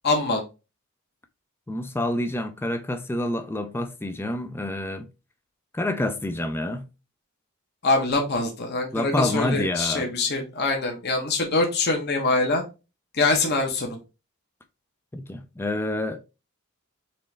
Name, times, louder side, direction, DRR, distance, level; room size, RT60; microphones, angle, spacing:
voice 1, 0.0-0.4 7.8-12.6 13.2-13.9, left 3 dB, 45° left, 1.0 m, -24 dB
voice 2, 1.7-5.1 5.7-6.9 8.9-10.1 15.1-16.2, left 1 dB, 10° left, 0.4 m, -28 dB
4.3 x 3.1 x 3.3 m
head